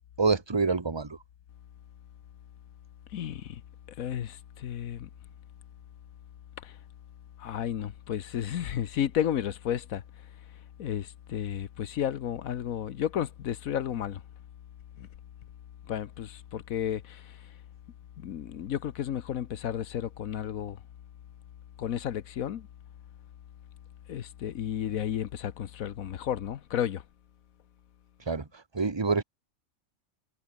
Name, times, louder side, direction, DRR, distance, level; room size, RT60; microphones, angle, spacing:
voice 1, 0.2-1.2 28.3-28.5 28.7-29.2, right 4 dB, 20° right, 1.1 m, -26 dB
voice 2, 3.1-3.6 4.0-5.1 6.6-6.8 7.4-10.0 10.8-14.2 15.0-15.1 15.9-17.4 18.2-20.8 21.8-22.7 24.1-27.0, left 10 dB, 80° left, 1.3 m, -32 dB
omnidirectional pair, 1.5 m